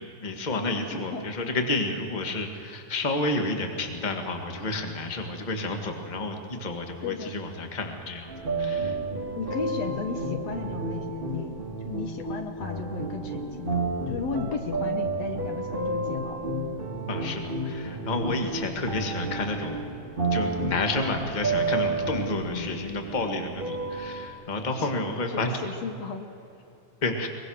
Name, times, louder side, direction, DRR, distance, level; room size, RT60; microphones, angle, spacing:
voice 1, 0.0-8.3 8.6-9.0 17.1-19.9 20.3-25.6 27.0-27.3, left 2 dB, 20° left, 4 dB, 1.6 m, -30 dB
voice 2, 0.9-1.3 7.0-7.3 9.4-16.4 22.5-22.8 24.8-24.9 25.3-26.3, left 5 dB, 65° left, 6 dB, 2.2 m, -35 dB
sound 1, 8.3-24.3, right 2 dB, 20° right, 1.7 m, -31 dB
23.5 x 21.5 x 6.5 m, 2.9 s
omnidirectional pair, 3.4 m